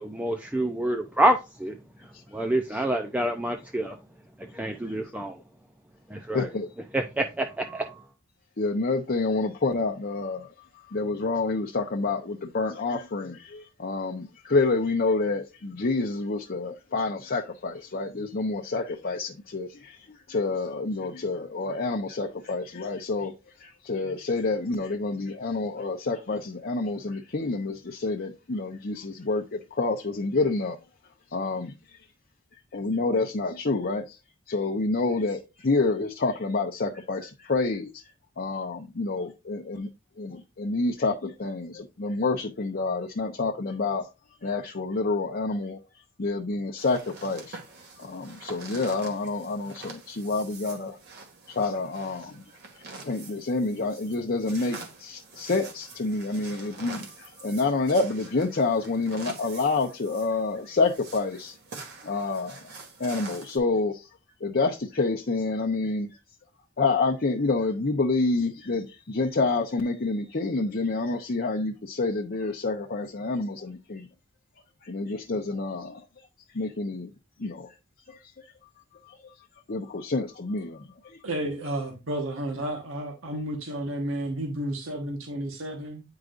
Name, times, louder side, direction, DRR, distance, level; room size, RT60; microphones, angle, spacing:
voice 1, 0.0-1.8 2.0-4.0 4.4-5.4 6.1-6.5 6.9-8.1, right 1 dB, 5° right, 0.5 m, -27 dB
voice 2, 6.3-6.7 8.6-23.3 23.6-30.8 31.3-32.0 32.7-34.2 34.5-38.0 38.4-39.9 40.2-44.1 44.4-45.8 46.2-47.6 48.0-51.0 51.5-52.4 53.0-61.6 62.0-64.1 64.4-66.1 66.8-74.1 74.8-76.0 76.5-77.1 77.4-77.7 78.1-78.5 79.1-79.3 79.7-81.2, left 3 dB, 50° left, 0.8 m, -28 dB
sound 1, 46.8-63.6, right 3 dB, 55° right, 2.0 m, -45 dB
voice 3, 81.2-86.0, right 1 dB, 75° right, 1.3 m, -32 dB
9.4 x 4.8 x 2.5 m
head